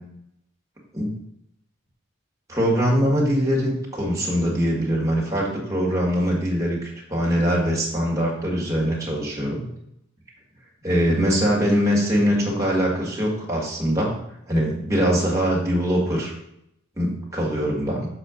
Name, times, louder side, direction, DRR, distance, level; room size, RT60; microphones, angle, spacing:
voice 1, 2.5-9.7 10.8-14.2 14.5-16.3 17.0-18.0, equal, 15° right, -3 dB, 1.6 m, -22 dB
6.7 x 4.3 x 5.0 m, 0.78 s
head